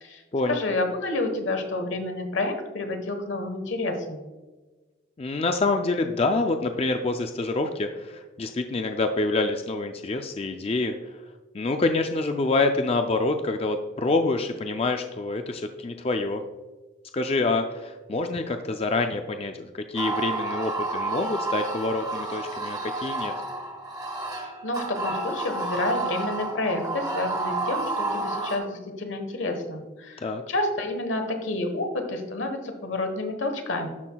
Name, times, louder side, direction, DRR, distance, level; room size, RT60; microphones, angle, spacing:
voice 1, 0.5-4.2 24.4-33.9, left 2 dB, 85° left, 5 dB, 1.2 m, -29 dB
voice 2, 5.2-10.9 11.5-16.4 17.1-23.3 30.2-30.4, left 3 dB, 30° left, 6 dB, 0.4 m, -26 dB
sound 1, 19.9-28.6, right 2 dB, 20° right, 1.4 m, -30 dB
12.0 x 5.8 x 2.3 m, 1.2 s
head